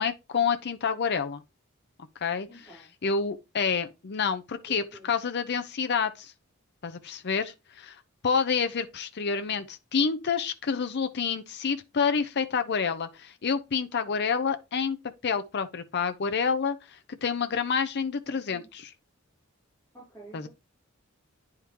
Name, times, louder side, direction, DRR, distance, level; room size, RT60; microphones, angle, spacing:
voice 1, 0.0-1.4 2.2-2.5 3.0-6.3 6.8-8.0 8.2-15.0 15.2-18.6 20.3-20.5, left 6 dB, 50° left, 0.6 m, -28 dB
voice 2, 2.5-2.9 4.7-5.1 18.3-18.7 19.9-20.5, right 2 dB, 10° left, 3.7 m, -49 dB
9.8 x 3.6 x 2.9 m
head